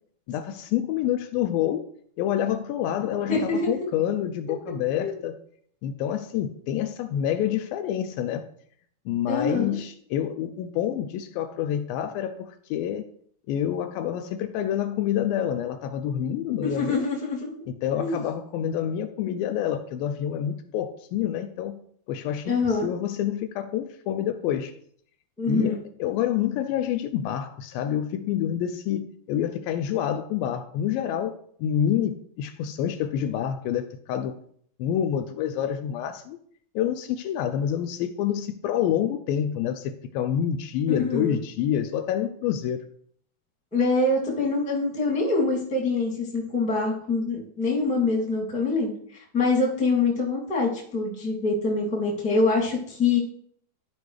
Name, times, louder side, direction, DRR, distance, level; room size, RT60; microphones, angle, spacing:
voice 1, 0.3-1.9 2.2-5.4 5.8-8.5 9.1-13.0 13.5-17.1 17.8-21.8 22.1-24.7 25.5-34.4 34.8-36.4 36.8-42.8, left 10 dB, 80° left, 8 dB, 2.2 m, -27 dB
voice 2, 3.3-3.7 5.0-5.1 9.3-9.7 16.6-17.5 18.0-18.2 22.4-22.9 25.4-25.8 40.9-41.4 43.7-53.2, left 3 dB, 5° left, -4 dB, 1.4 m, -25 dB
13.0 x 5.0 x 3.2 m, 0.62 s
omnidirectional pair, 4.3 m